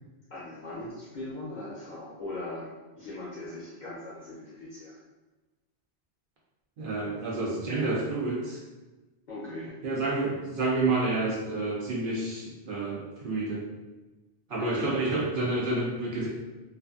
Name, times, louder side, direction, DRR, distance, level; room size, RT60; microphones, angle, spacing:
voice 1, 0.3-5.0 9.3-9.8 14.5-14.9, left 2 dB, 50° left, -8 dB, 0.7 m, -40 dB
voice 2, 6.8-8.6 9.8-13.7 14.5-16.3, right 2 dB, 60° right, -3 dB, 0.7 m, -29 dB
2.4 x 2.3 x 2.3 m, 1.2 s
omnidirectional pair, 1.1 m